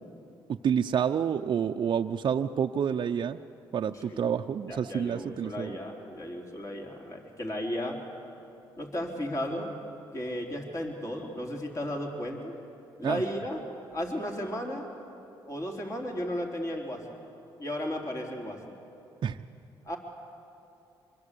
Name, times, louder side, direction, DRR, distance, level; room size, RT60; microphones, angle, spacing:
voice 1, 0.6-3.4 3.7-5.8 13.0-13.2 19.2-19.4, right 8 dB, 55° right, 4 dB, 0.7 m, -28 dB
voice 2, 4.7-8.0 8.8-9.7 10.1-12.5 13.0-13.6 13.9-14.9 15.5-17.2 17.6-18.8 19.9-20.0, equal, 35° left, 1 dB, 3.8 m, -34 dB
25.0 x 22.0 x 8.4 m, 2.7 s
cardioid pair, 80°, 9 cm